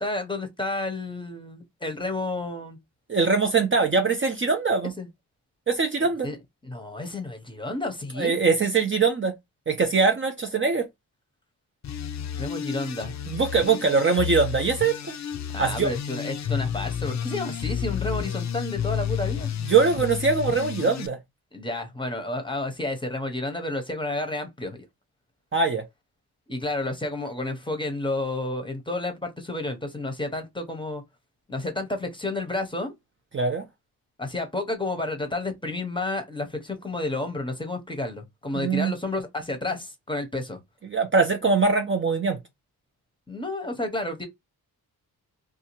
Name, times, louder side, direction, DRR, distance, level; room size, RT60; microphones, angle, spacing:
voice 1, 0.0-2.8 4.8-5.1 6.2-6.4 6.6-8.4 12.4-13.1 15.5-19.5 21.5-24.9 26.5-31.0 31.5-32.9 34.2-40.6 43.3-44.3, left 2 dB, 15° left, 0.7 m, -31 dB
voice 2, 3.1-4.9 5.7-6.3 8.2-9.3 9.7-10.9 13.3-15.0 15.6-15.9 19.6-21.2 25.5-25.8 33.3-33.6 38.5-38.9 40.9-42.4, right 4 dB, 30° right, 0.5 m, -22 dB
sound 1, 11.8-21.1, left 9 dB, 45° left, 0.5 m, -31 dB
2.6 x 2.3 x 2.9 m
cardioid pair, 75°, 39 cm